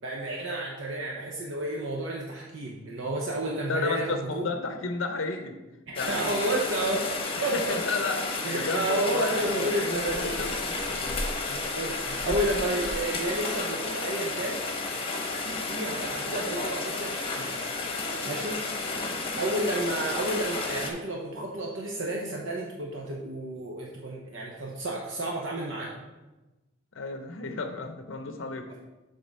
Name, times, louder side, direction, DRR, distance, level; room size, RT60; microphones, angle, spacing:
voice 1, 0.0-4.5 5.9-7.1 7.4-7.8 8.4-10.5 11.5-14.6 15.3-17.5 18.2-18.6 19.4-25.9, right 1 dB, 70° right, -2 dB, 0.9 m, -31 dB
voice 2, 3.7-5.6 5.9-6.3 7.3-11.2 12.3-12.5 13.1-13.2 26.9-28.6, left 3 dB, 70° left, 6 dB, 0.6 m, -33 dB
Rain, 6.0-20.9, left 3 dB, 30° left, 0.9 m, -32 dB
7.4 x 3.7 x 5.3 m, 1.1 s
head